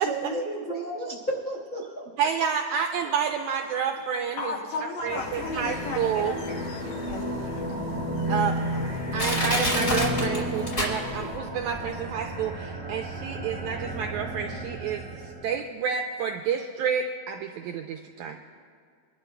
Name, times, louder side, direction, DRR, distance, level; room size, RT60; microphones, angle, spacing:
voice 1, 0.0-2.0, right 1 dB, 50° left, -4 dB, 1.0 m, -32 dB
voice 2, 2.2-4.5 4.8-6.4 8.3-8.5 9.1-18.4, right 7 dB, 85° right, 4 dB, 1.7 m, -29 dB
voice 3, 4.0-8.0 8.5-8.7, left 4 dB, 70° left, 1 dB, 2.0 m, -36 dB
sound 1, 5.0-15.6, equal, 45° right, 0.4 m, -32 dB
sound 2, 5.1-11.4, left 6 dB, 85° left, 2.6 m, -41 dB
Crushing, 7.1-7.2 7.8-7.9 8.6-8.7 9.2-11.4 11.7-11.8, left 1 dB, 25° left, 3.2 m, -27 dB
26.5 x 12.0 x 2.2 m, 2.1 s
omnidirectional pair, 3.9 m